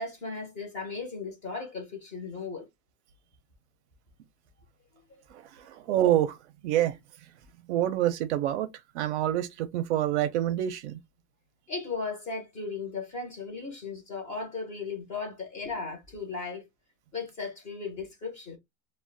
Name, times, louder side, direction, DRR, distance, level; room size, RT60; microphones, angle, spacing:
voice 1, 0.0-2.7 5.6-5.7 11.7-16.7 17.1-18.6, left 4 dB, 20° left, 0.6 m, -36 dB
voice 2, 5.3-6.4 6.6-7.0 7.7-8.7 8.9-11.0, right 12 dB, 60° right, 0.5 m, -27 dB
2.4 x 2.1 x 3.7 m
supercardioid pair, 175°, 39 cm